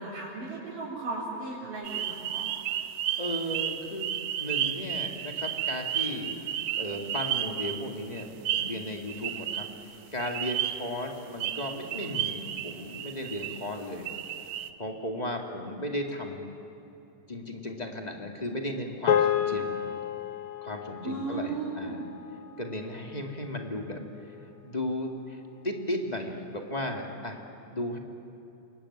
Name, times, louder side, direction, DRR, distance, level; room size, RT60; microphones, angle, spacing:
voice 1, 0.0-2.5 21.0-22.0, right 3 dB, 90° right, -7 dB, 5.9 m, -35 dB
sound 1, 1.8-9.8 10.2-11.0 11.4-13.7 14.0-14.7, right 11 dB, 70° right, 2.2 m, -33 dB
voice 2, 3.2-6.4 6.8-9.7 10.1-14.1 14.8-16.5 17.3-19.8 20.6-22.0 22.6-24.0 24.6-27.4 27.7-28.0, left 1 dB, 15° left, 2 dB, 1.8 m, -35 dB
sound 2, 19.1-23.6, left 9 dB, 75° left, 1.2 m, -31 dB
27.0 x 22.5 x 9.9 m, 3.0 s
omnidirectional pair, 3.7 m